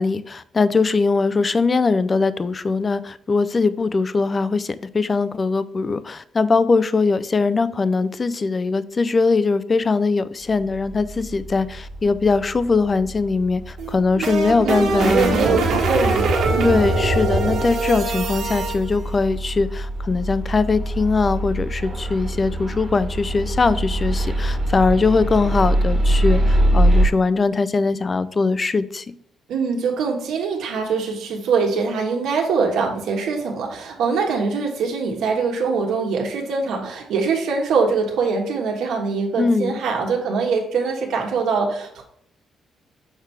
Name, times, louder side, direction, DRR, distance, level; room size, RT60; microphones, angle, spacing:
voice 1, 0.0-15.6 16.6-29.0 39.4-39.8, left 4 dB, 25° left, 15 dB, 0.3 m, -21 dB
sound 1, 10.5-27.1, right 1 dB, 25° right, 1.4 m, -24 dB
sound 2, 13.8-18.8, right 2 dB, 70° right, 1.4 m, -22 dB
voice 2, 14.6-16.9 29.5-42.0, right 4 dB, 90° right, 1 dB, 1.5 m, -23 dB
6.6 x 4.6 x 3.3 m, 0.71 s
cardioid pair, 155°, 0 cm